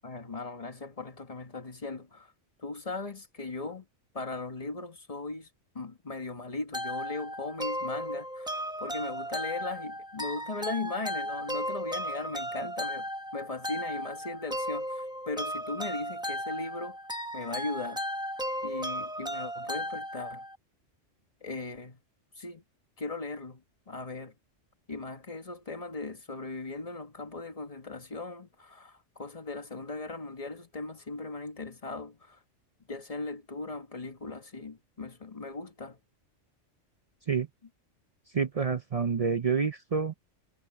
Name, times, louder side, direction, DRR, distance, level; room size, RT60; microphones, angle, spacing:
voice 1, 0.0-2.3 2.6-3.9 4.1-5.5 5.7-17.0 17.3-18.0 18.6-20.5 21.4-22.0 22.4-22.6 23.0-24.4 24.9-32.4 32.9-36.0, left 3 dB, 30° left, 1.6 m, -38 dB
sound 1, 6.7-20.6, equal, 5° right, 0.9 m, -35 dB
voice 2, 38.3-40.1, right 5 dB, 45° right, 0.5 m, -28 dB
omnidirectional pair, 1.3 m